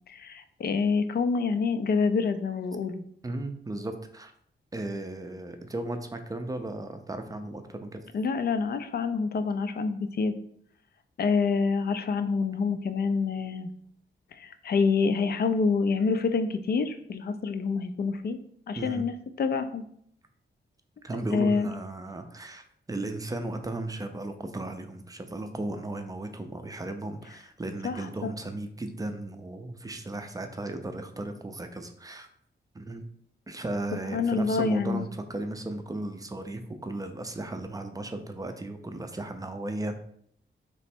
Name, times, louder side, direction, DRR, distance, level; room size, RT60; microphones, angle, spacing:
voice 1, 0.1-3.0 8.1-10.3 11.2-13.7 14.4-18.4 18.7-19.8 21.3-21.7 27.8-28.3 34.1-35.1, left 4 dB, 55° left, 10 dB, 0.4 m, -27 dB
voice 2, 3.2-4.3 4.7-8.0 18.8-19.0 21.0-32.3 32.7-33.0 33.5-40.0, right 2 dB, 20° right, 6 dB, 0.4 m, -35 dB
3.1 x 3.0 x 4.4 m, 0.66 s
wide cardioid pair, 120°, 20 cm